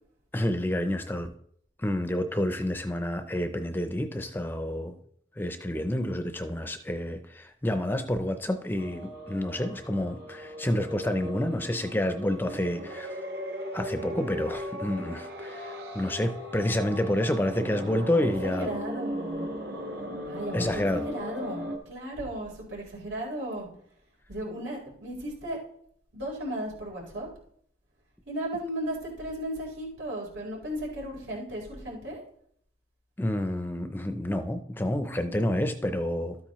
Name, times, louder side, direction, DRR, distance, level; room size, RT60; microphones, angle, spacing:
voice 1, 0.3-1.3 1.8-5.0 5.4-13.1 13.7-18.7 20.5-21.1 33.2-36.4, left 1 dB, 10° left, 8 dB, 0.5 m, -29 dB
sound 1, 8.8-21.8, equal, 65° right, 1.5 m, -37 dB
voice 2, 18.4-19.5 20.3-20.7 21.1-23.7 24.3-25.6 26.1-27.3 28.3-32.2, right 1 dB, 90° right, -3 dB, 4.0 m, -35 dB
13.0 x 8.7 x 3.1 m, 0.66 s
head